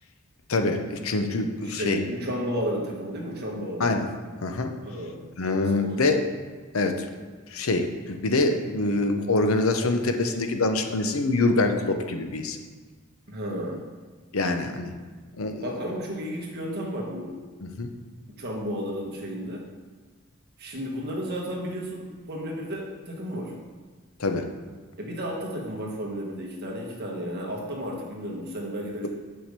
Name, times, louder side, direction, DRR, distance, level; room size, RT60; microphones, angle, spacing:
voice 1, 0.5-2.0 3.8-4.1 4.4-4.7 5.4-6.2 6.7-7.0 7.5-12.6 14.3-14.9 15.4-15.6 17.8-17.9 24.2-24.4, left 2 dB, 75° left, 6 dB, 0.8 m, -25 dB
voice 2, 1.6-3.9 4.8-5.2 5.8-6.0 13.3-13.8 15.6-17.4 18.4-19.7 20.6-23.6 25.0-29.1, equal, 50° right, -1 dB, 1.5 m, -33 dB
6.2 x 4.9 x 6.7 m, 1.4 s
head